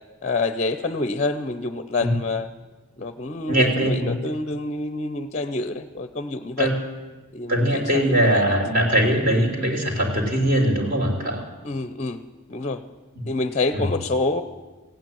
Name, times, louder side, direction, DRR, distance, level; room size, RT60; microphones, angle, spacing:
voice 1, 0.2-2.5 3.0-6.7 7.3-8.6 11.6-12.2 12.5-12.8 13.3-14.4, left 3 dB, 30° left, 11 dB, 0.6 m, -27 dB
voice 2, 3.5-4.1 6.6-6.8 7.5-11.4 13.2-13.3 13.7-13.9, right 1 dB, 40° right, 1 dB, 3.1 m, -21 dB
16.0 x 8.9 x 9.0 m, 1.2 s
head